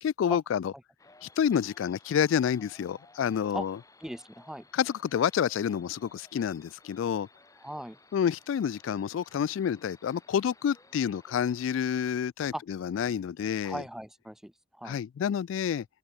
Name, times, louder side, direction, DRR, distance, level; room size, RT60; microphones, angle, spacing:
voice 1, 0.0-0.7 1.2-3.8 4.7-7.3 8.1-13.8 14.8-15.9, left 8 dB, 85° left, 0.3 m, -29 dB
sound 1, 1.0-12.1, left 3 dB, 20° left, 5.6 m, -58 dB
voice 2, 4.0-4.7 7.6-8.0 12.5-12.6 13.6-15.0, equal, ahead, 0.5 m, -38 dB
open air
head